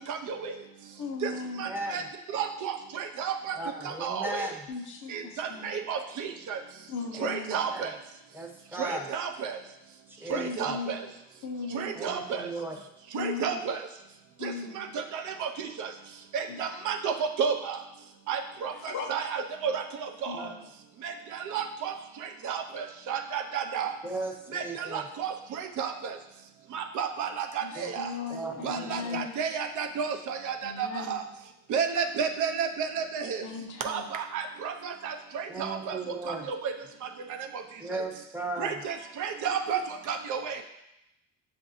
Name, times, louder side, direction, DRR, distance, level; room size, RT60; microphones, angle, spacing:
voice 1, 0.1-0.5 1.2-1.3 1.6-2.0 2.3-3.6 3.8-4.5 5.1-6.6 7.2-7.9 8.8-9.6 10.3-11.0 11.7-12.5 13.1-13.8 14.4-15.9 16.3-17.8 18.3-20.4 21.0-21.1 21.5-21.9 22.4-23.9 24.5-26.2 26.7-28.1 28.6-31.2 31.7-33.4 33.8-36.0 36.3-36.7 38.6-39.8 40.1-40.6, right 6 dB, 80° right, 6 dB, 0.5 m, -32 dB
voice 2, 1.0-1.7 4.7-5.7 6.9-7.6 10.3-11.0 11.4-12.1 12.4-12.5 13.1-13.7 14.4-15.0 16.5-16.6 18.8-19.1 20.3-20.6 27.6-29.4 30.6-31.2 33.4-34.0, left 5 dB, 75° left, 2 dB, 0.7 m, -37 dB
voice 3, 1.6-2.1 3.5-4.7 7.1-7.3 7.6-7.9 8.3-9.1 10.2-10.7 11.9-12.8 20.3-20.6 24.0-25.1 27.8-27.9 28.3-29.2 35.5-36.5 37.8-38.8, right 2 dB, 5° right, 2 dB, 0.6 m, -37 dB
6.5 x 2.6 x 2.6 m, 0.87 s
cardioid pair, 90°, 30 cm